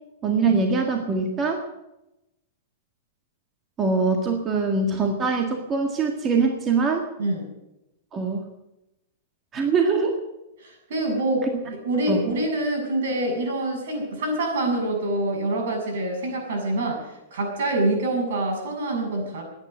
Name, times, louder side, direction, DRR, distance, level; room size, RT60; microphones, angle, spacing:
voice 1, 0.2-1.7 3.8-7.1 8.1-8.4 9.5-10.2 11.5-11.6 12.1-12.2, right 4 dB, 20° right, 2 dB, 1.8 m, -23 dB
voice 2, 10.6-19.4, right 1 dB, 75° right, 2 dB, 7.1 m, -26 dB
17.5 x 9.9 x 7.7 m, 0.92 s
supercardioid pair, 155°, 0 cm